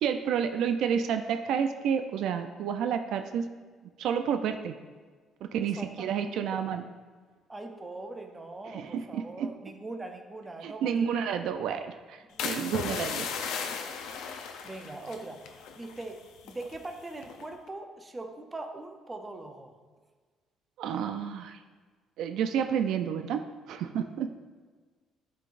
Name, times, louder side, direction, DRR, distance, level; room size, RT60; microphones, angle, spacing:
voice 1, 0.0-3.5 4.0-4.7 5.4-6.8 8.7-9.5 10.6-13.2 20.8-21.6 22.2-24.3, right 7 dB, 75° right, 7 dB, 0.3 m, -30 dB
voice 2, 5.6-6.6 7.5-11.2 12.3-13.0 14.1-19.7, right 2 dB, 15° right, 5 dB, 0.6 m, -42 dB
sound 1, 12.4-16.1 16.4-16.8 17.2-17.5, left 6 dB, 90° left, 0.5 m, -36 dB
11.5 x 3.9 x 2.5 m, 1.5 s
cardioid pair, 135°, 0 cm